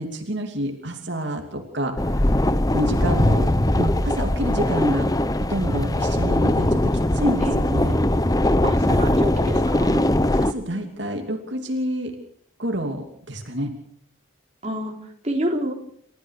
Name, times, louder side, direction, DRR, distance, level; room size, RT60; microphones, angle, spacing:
voice 1, 0.0-2.4 2.7-3.5 3.8-5.1 5.4-8.0 10.3-12.1 12.6-13.7, equal, 55° right, 3 dB, 2.9 m, -28 dB
sound 1, 2.0-10.5, left 1 dB, 20° left, 0.8 m, -20 dB
voice 2, 8.6-10.0 14.6-14.9 15.2-15.7, right 1 dB, 35° right, 2 dB, 3.6 m, -27 dB
29.0 x 14.5 x 6.6 m, 0.63 s
head